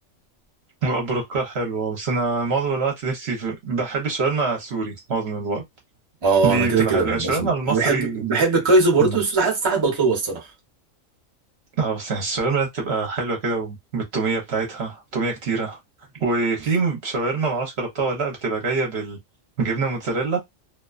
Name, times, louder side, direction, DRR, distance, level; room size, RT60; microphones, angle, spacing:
voice 1, 0.8-5.6 6.4-8.2 9.0-9.2 11.8-15.8 16.2-19.2 19.6-20.4, right 4 dB, 60° right, 0.9 m, -25 dB
voice 2, 6.2-10.5, right 3 dB, 25° right, 0.7 m, -20 dB
2.4 x 2.2 x 2.4 m
omnidirectional pair, 1.3 m